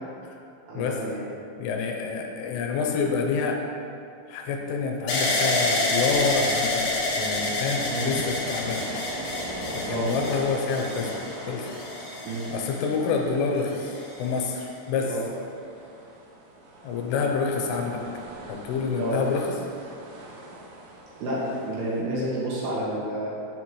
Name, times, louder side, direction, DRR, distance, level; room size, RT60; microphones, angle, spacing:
voice 1, 0.7-1.3 7.9-8.2 9.9-10.1 12.3-12.5 15.0-15.3 19.0-19.2 21.2-23.4, right 1 dB, 65° right, -7 dB, 3.5 m, -30 dB
voice 2, 1.6-3.6 4.3-8.9 9.7-11.8 12.5-15.2 16.8-18.0 18.5-19.6, left 5 dB, 90° left, 2 dB, 3.4 m, -28 dB
Wheeling Down, 5.1-13.1 13.8-14.4, left 2 dB, 60° left, 2.6 m, -28 dB
sound 1, 6.1-22.0, right 1 dB, 90° right, 3.7 m, -42 dB
8.6 x 8.2 x 3.1 m, 2.5 s
omnidirectional pair, 5.6 m